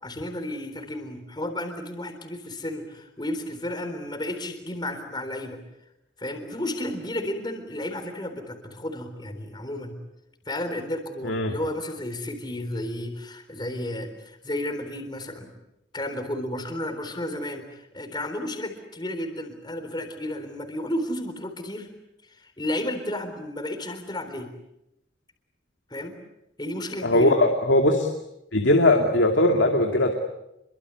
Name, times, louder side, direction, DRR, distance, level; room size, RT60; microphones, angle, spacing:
voice 1, 0.0-5.6 6.2-10.0 10.5-15.5 15.9-21.9 22.3-24.5 25.9-26.2 26.6-27.4, left 1 dB, 25° left, 6 dB, 3.7 m, -32 dB
voice 2, 27.0-28.1 28.5-30.1, left 1 dB, 80° left, 3 dB, 2.6 m, -20 dB
28.5 x 23.5 x 8.2 m, 0.86 s
head